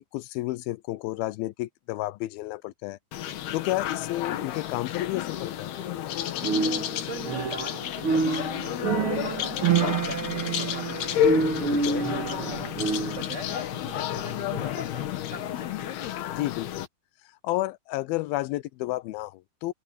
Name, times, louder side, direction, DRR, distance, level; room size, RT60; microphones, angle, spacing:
voice 1, 0.0-3.0 3.5-5.7 11.7-12.1 16.3-16.9 17.4-19.7, left 18 dB, 90° left, 2.2 m, -31 dB
sound 1, 3.1-16.9, left 11 dB, 70° left, 3.4 m, -31 dB
sound 2, 6.4-7.8 8.0-13.3, right 5 dB, 85° right, 1.1 m, -27 dB
voice 2, 6.9-12.6 13.0-15.9, right 1 dB, 35° right, 1.2 m, -42 dB
omnidirectional pair, 4.9 m